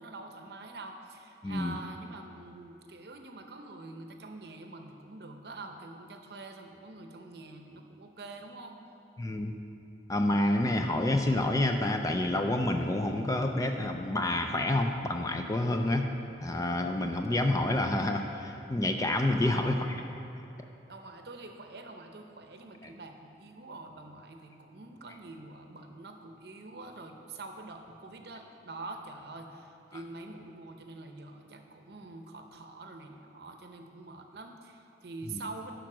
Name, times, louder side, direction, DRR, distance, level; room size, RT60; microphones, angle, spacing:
voice 1, 0.0-8.8 19.4-20.0 20.9-35.7, right 2 dB, 65° right, 5 dB, 0.7 m, -45 dB
voice 2, 1.4-1.8 9.2-9.6 10.1-16.1 16.4-20.0 35.3-35.4, left 1 dB, 20° left, 5 dB, 0.4 m, -28 dB
9.0 x 5.2 x 6.0 m, 2.9 s
head